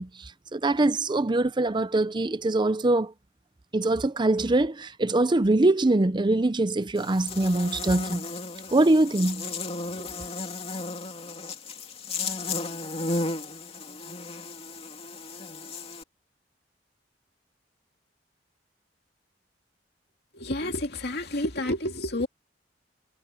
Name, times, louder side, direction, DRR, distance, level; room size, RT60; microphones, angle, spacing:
voice 1, 0.0-3.1 3.7-8.3 8.7-9.5 10.0-10.1, right 2 dB, 25° right, 0.6 m, -23 dB
Buzz, 7.0-16.0, left 3 dB, 35° left, 2.8 m, -34 dB
voice 2, 20.3-22.3, left 1 dB, 60° left, 2.5 m, -29 dB
head